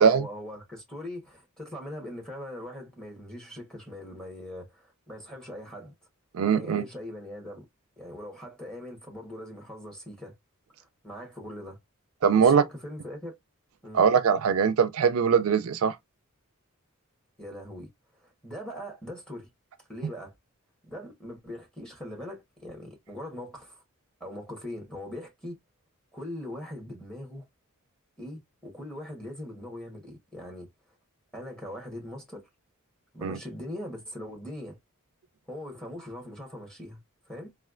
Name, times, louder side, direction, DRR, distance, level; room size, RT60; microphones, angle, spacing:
voice 1, 0.0-5.9 6.5-7.6 8.0-10.4 10.8-11.8 12.4-13.4 13.8-14.0 17.4-19.5 19.9-20.3 20.8-23.8 24.2-25.6 26.1-27.5 28.2-30.7 31.3-32.5 33.1-34.8 35.5-37.0 37.3-37.5, left 1 dB, 5° left, 1.3 m, -41 dB
voice 2, 6.3-6.8 12.2-12.6 13.9-16.0 33.2-33.4, right 6 dB, 70° right, 0.4 m, -21 dB
3.2 x 2.4 x 2.4 m
head